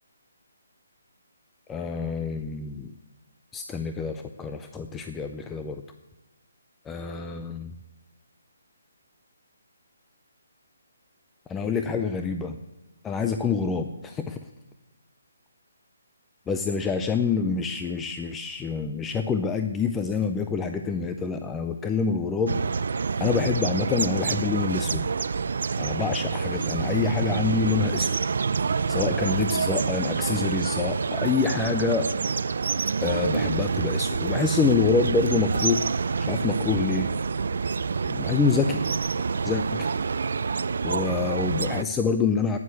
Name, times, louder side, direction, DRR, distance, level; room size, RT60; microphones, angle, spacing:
voice 1, 1.7-2.9 3.5-5.8 6.9-7.7 11.5-12.6 13.0-14.4 16.5-22.6 22.9-25.1 25.8-28.2 28.9-32.1 33.0-35.9 36.2-37.1 38.1-38.8 39.4-39.9 40.8-42.6, left 5 dB, 10° left, 7 dB, 0.4 m, -27 dB
sound 1, 22.5-41.8, right 5 dB, 60° right, 0.5 m, -27 dB
12.5 x 9.5 x 9.5 m, 1.0 s
hypercardioid pair, 170°, 0 cm